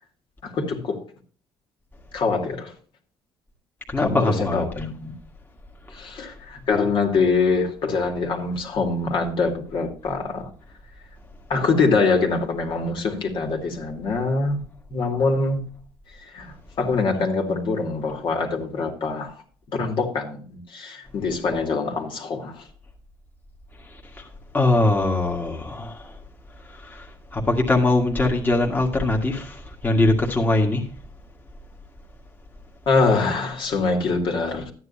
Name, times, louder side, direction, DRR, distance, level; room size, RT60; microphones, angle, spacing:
voice 1, 0.4-1.0 2.1-2.7 4.0-5.1 5.9-10.5 11.5-14.6 14.9-15.6 16.3-19.3 19.7-22.6 32.9-34.7, left 4 dB, 55° left, 2.5 m, -24 dB
voice 2, 3.9-4.9 23.9-24.2 24.5-26.2 26.7-30.9, left 2 dB, 20° left, 1.9 m, -22 dB
13.0 x 9.6 x 2.8 m
cardioid pair, 110°, 10 cm